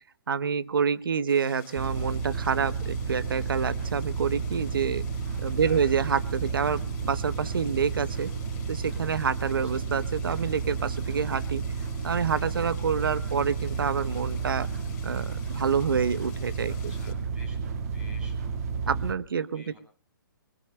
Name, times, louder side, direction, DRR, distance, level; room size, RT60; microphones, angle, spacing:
voice 1, 0.3-5.0 5.4-8.3 8.7-11.6 12.0-14.7 15.0-16.9 18.9-19.8, right 6 dB, 75° right, 15 dB, 0.9 m, -28 dB
sound 1, 1.3-17.1, left 10 dB, 40° left, 2.8 m, -52 dB
sound 2, 1.7-19.1, right 5 dB, 45° right, 1.8 m, -32 dB
voice 2, 5.6-6.0 9.4-9.8 16.7-18.9 19.4-19.8, left 1 dB, 10° right, 2 dB, 7.6 m, -53 dB
26.0 x 22.5 x 2.2 m, 0.36 s
hypercardioid pair, 145°, 12 cm